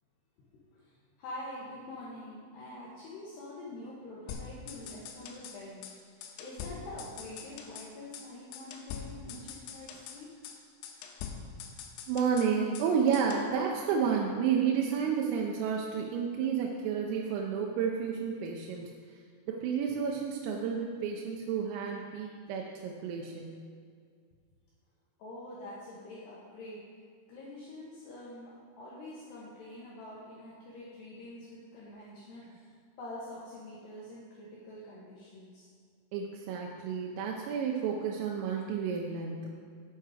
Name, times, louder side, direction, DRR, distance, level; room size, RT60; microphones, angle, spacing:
voice 1, 0.5-0.9 1.2-10.3 25.2-26.9 27.3-32.6 33.0-35.7, left 1 dB, 70° left, -6 dB, 2.7 m, -46 dB
sound 1, 4.3-5.6 5.8-6.0 6.2-7.9 8.1-8.3 8.5-10.2 10.4-10.6 10.8-12.9 13.1-13.5, left 7 dB, 90° left, 3.3 m, -44 dB
voice 2, 12.1-18.9 19.5-23.6 36.1-39.5, right 6 dB, 85° right, 0 dB, 3.2 m, -31 dB
9.3 x 7.9 x 4.8 m, 2.1 s
omnidirectional pair, 6.0 m